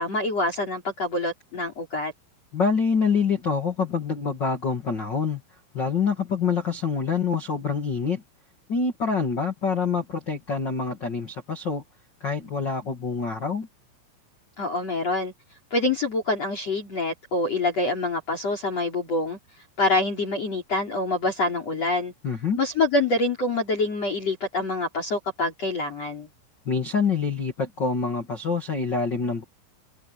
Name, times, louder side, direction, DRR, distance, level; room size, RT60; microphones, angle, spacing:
voice 1, 0.0-2.1 14.6-15.3 15.7-19.4 19.8-22.1 22.6-26.3, left 2 dB, 35° left, 4.8 m, -26 dB
voice 2, 2.5-5.4 5.7-8.2 8.7-11.8 12.2-13.7 22.2-22.6 26.6-29.4, left 5 dB, 85° left, 0.9 m, -26 dB
omnidirectional pair, 5.9 m